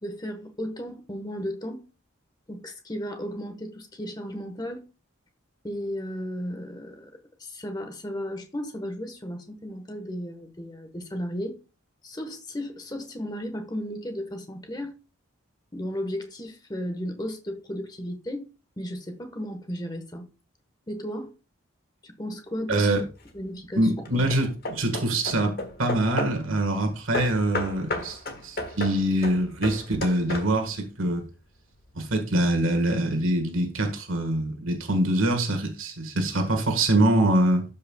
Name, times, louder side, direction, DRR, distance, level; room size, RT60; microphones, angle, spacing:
voice 1, 0.0-1.8 2.5-4.8 5.6-7.1 7.4-11.6 12.0-14.9 15.7-18.5 18.8-20.3 20.9-21.3 22.0-22.9 23.3-23.9, equal, 20° left, 1.2 m, -34 dB
voice 2, 22.7-23.0 23.8-31.2 31.9-37.6, right 1 dB, 80° right, 1.6 m, -24 dB
Hammer / Wood, 22.9-23.4 24.0-26.5 27.1-30.8, left 1 dB, 45° left, 1.4 m, -34 dB
12.5 x 5.5 x 2.3 m
head